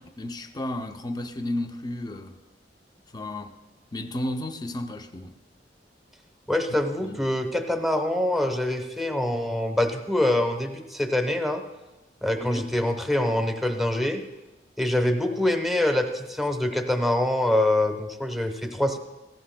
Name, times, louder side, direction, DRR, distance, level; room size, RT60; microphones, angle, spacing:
voice 1, 0.0-2.4 3.1-3.5 3.9-5.4 6.8-7.2 12.4-12.7, left 1 dB, 25° left, 0.5 m, -33 dB
voice 2, 6.5-11.6 12.2-14.2 14.8-19.0, left 1 dB, ahead, 0.9 m, -25 dB
16.0 x 15.5 x 2.2 m
head